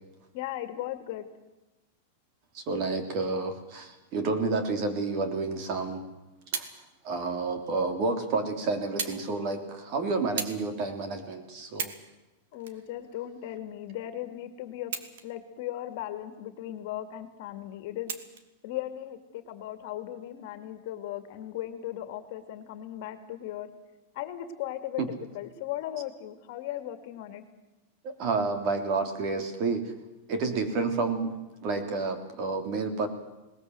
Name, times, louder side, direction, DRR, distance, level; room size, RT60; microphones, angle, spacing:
voice 1, 0.3-1.3 12.5-14.9 15.2-18.1 18.6-23.7 24.1-27.4, left 12 dB, 50° left, 10 dB, 2.3 m, -37 dB
voice 2, 2.5-6.0 6.5-6.6 7.0-11.9 25.0-25.1 28.0-29.8 30.3-31.3 31.6-33.1, right 3 dB, 35° right, 8 dB, 3.2 m, -30 dB
sound 1, 6.4-6.8 7.7-7.8 9.0-9.2 9.5-9.8 10.4-10.6 11.1-11.2 11.7-12.1 12.6-13.6 14.8-15.5 15.9-16.0 18.1-18.5 19.4-19.5, right 7 dB, 75° right, 2.6 m, -36 dB
21.0 x 20.0 x 7.9 m, 1.0 s
supercardioid pair, 170°, 0 cm